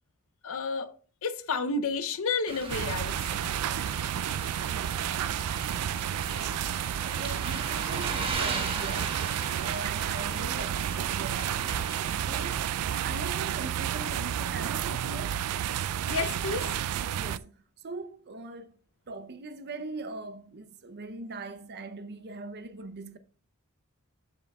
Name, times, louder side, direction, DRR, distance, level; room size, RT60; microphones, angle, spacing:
voice 1, 0.4-0.9 1.2-3.4 16.1-16.7, left 4 dB, 65° left, 0.6 m, -31 dB
sound 1, 2.5-12.6, right 3 dB, 25° right, 1.4 m, -39 dB
sound 2, 2.7-17.4, right 10 dB, 85° right, 0.3 m, -31 dB
voice 2, 7.0-9.3 9.6-15.4 17.1-17.5 17.8-18.7 19.1-23.2, right 3 dB, 50° right, 0.6 m, -41 dB
7.7 x 7.6 x 2.3 m
head